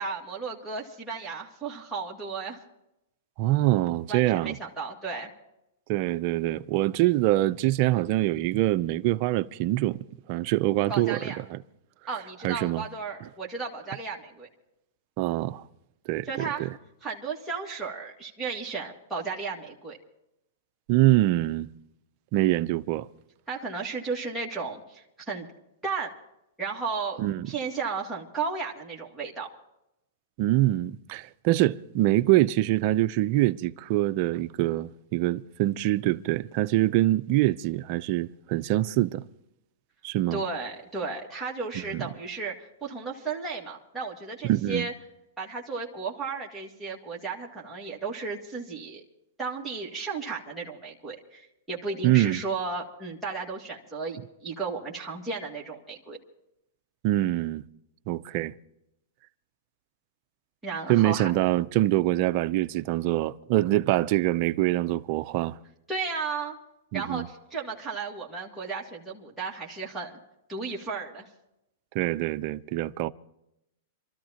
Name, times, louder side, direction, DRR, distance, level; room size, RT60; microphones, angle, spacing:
voice 1, 0.0-2.6 4.1-5.3 10.9-11.4 12.1-14.5 16.3-16.7 17.0-20.0 23.5-25.5 25.8-26.1 26.6-27.2 27.5-29.5 40.3-44.9 45.4-49.0 49.4-56.2 60.6-61.3 65.9-66.6 66.9-70.2 70.5-71.3, right 4 dB, 5° right, 2.0 m, -34 dB
voice 2, 3.4-4.6 5.9-10.0 10.3-11.6 12.4-12.9 15.2-15.6 16.1-16.3 16.6-16.7 20.9-21.7 22.3-23.1 27.2-27.5 30.4-39.2 40.0-40.4 41.9-42.0 44.5-44.9 52.0-52.4 57.0-57.6 58.1-58.5 60.9-65.6 66.9-67.3 71.9-73.1, right 16 dB, 45° right, 0.5 m, -24 dB
27.0 x 13.5 x 2.9 m
hypercardioid pair, 145°, 0 cm